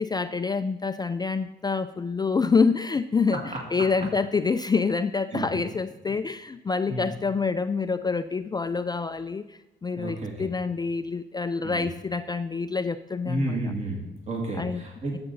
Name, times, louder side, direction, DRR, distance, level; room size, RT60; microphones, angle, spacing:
voice 1, 0.0-3.4 3.7-13.6 14.6-14.8, left 4 dB, 20° left, 10 dB, 0.4 m, -27 dB
voice 2, 9.9-10.5 11.6-11.9 13.2-15.2, right 1 dB, 35° right, -1 dB, 2.2 m, -31 dB
12.0 x 7.7 x 4.1 m, 0.93 s
cardioid pair, 90°, 20 cm